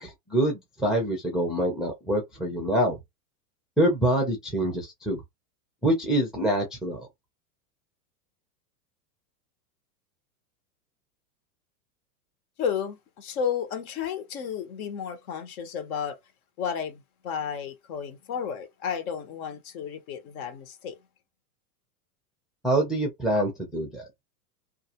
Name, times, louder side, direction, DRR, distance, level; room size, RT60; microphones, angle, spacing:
voice 1, 0.0-3.0 3.8-5.2 5.8-7.1 22.6-24.0, right 1 dB, ahead, 0.4 m, -25 dB
voice 2, 12.6-16.2 16.6-21.0, left 7 dB, 60° left, 1.0 m, -32 dB
2.4 x 2.3 x 2.8 m
hypercardioid pair, 125°, 49 cm